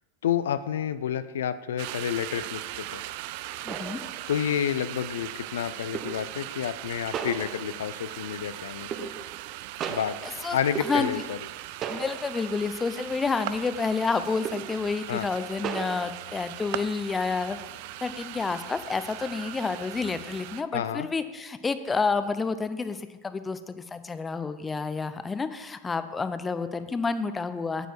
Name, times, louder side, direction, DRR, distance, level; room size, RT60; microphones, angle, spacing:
voice 1, 0.2-3.0 4.3-9.1 9.9-10.2 10.5-11.4 15.1-15.3 20.7-21.1, left 9 dB, 75° left, 13 dB, 0.4 m, -29 dB
sound 1, 1.8-20.6, right 15 dB, 60° right, 0.4 m, -39 dB
sound 2, 3.1-3.2 3.7-4.6 5.9-6.4 7.1-8.0 8.9-9.5 9.8-11.5 11.8-12.6 13.0-13.1 14.4-14.9 15.6-16.1, right 7 dB, 35° right, 0.9 m, -36 dB
voice 2, 3.6-4.0 10.4-11.1 11.9-17.6 18.0-27.9, left 4 dB, 15° left, 11 dB, 0.7 m, -29 dB
9.2 x 8.1 x 4.7 m, 1.2 s
hypercardioid pair, 95°, 0 cm